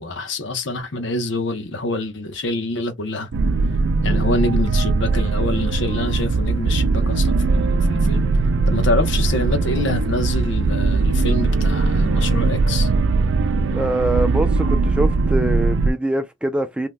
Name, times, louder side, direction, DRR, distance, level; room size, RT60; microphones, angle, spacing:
voice 1, 0.0-3.3 4.0-8.2 8.7-12.9, left 2 dB, 75° left, 0.9 m, -26 dB
sound 1, 3.3-15.9, right 3 dB, 80° right, 0.4 m, -19 dB
voice 2, 13.7-16.9, right 1 dB, 5° right, 0.4 m, -24 dB
2.8 x 2.1 x 3.5 m
head